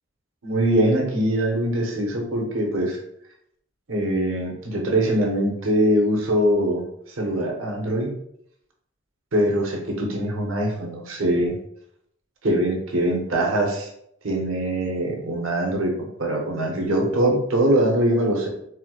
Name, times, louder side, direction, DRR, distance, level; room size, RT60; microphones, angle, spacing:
voice 1, 0.4-3.0 3.9-6.8 7.2-8.1 9.3-11.6 12.4-13.9 14.2-18.5, right 1 dB, 80° right, 1 dB, 0.8 m, -22 dB
4.3 x 2.1 x 2.3 m, 0.73 s
head